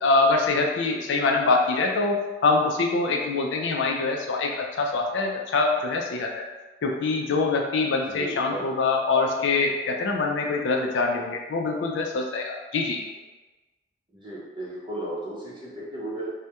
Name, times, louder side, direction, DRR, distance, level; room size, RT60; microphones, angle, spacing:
voice 1, 0.0-6.4 6.8-13.0, left 3 dB, 85° left, 1 dB, 0.4 m, -24 dB
voice 2, 8.1-8.6 14.1-16.3, right 1 dB, 25° right, -6 dB, 0.6 m, -35 dB
2.3 x 2.1 x 2.8 m, 1.2 s
head